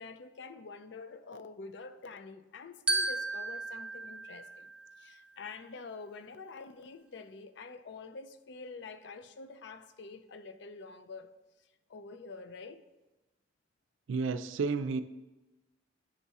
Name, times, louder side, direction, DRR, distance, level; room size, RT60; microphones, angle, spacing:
voice 1, 0.0-4.7 5.0-11.3 11.9-12.8, left 4 dB, 60° left, 0.4 m, -47 dB
Glockenspiel, 2.9-5.3, right 2 dB, 5° right, 0.5 m, -35 dB
voice 2, 14.1-15.0, right 4 dB, 80° right, 0.4 m, -31 dB
9.9 x 3.6 x 4.1 m
head